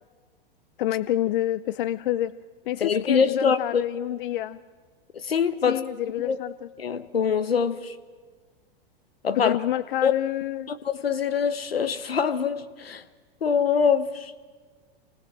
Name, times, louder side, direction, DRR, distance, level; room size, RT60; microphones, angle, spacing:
voice 1, 0.8-2.3 2.6-4.6 5.7-6.5 9.4-10.7, left 13 dB, 60° left, 0.6 m, -27 dB
voice 2, 2.8-3.8 5.1-5.8 6.2-6.4 6.8-7.9 9.2-9.6 10.0-10.1 10.7-13.0 13.4-14.3, left 6 dB, 85° left, 1.2 m, -24 dB
25.5 x 18.5 x 7.4 m
hypercardioid pair, 105°, 29 cm